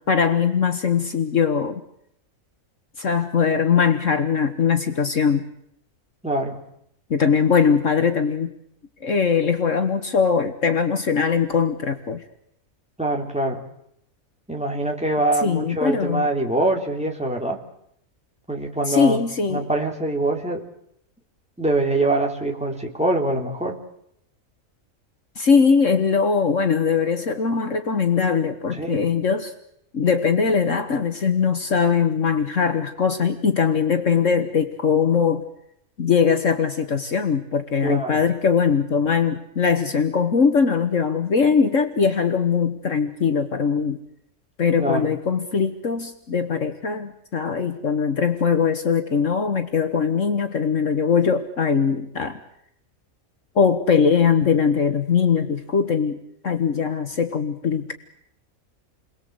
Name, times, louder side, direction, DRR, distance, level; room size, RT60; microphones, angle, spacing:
voice 1, 0.1-1.8 3.0-5.4 7.1-8.5 9.0-12.2 15.4-16.3 18.9-19.6 25.4-29.5 29.9-35.4 36.0-44.0 44.6-52.4 53.6-56.2 56.4-57.9, left 6 dB, 60° left, 7 dB, 1.8 m, -21 dB
voice 2, 6.2-6.6 13.0-13.6 14.5-17.6 18.5-19.2 19.5-20.6 21.6-23.8 28.7-29.0 37.8-38.2 44.8-45.1, right 2 dB, 5° right, 0 dB, 3.3 m, -24 dB
29.0 x 21.5 x 8.0 m, 0.75 s
omnidirectional pair, 1.5 m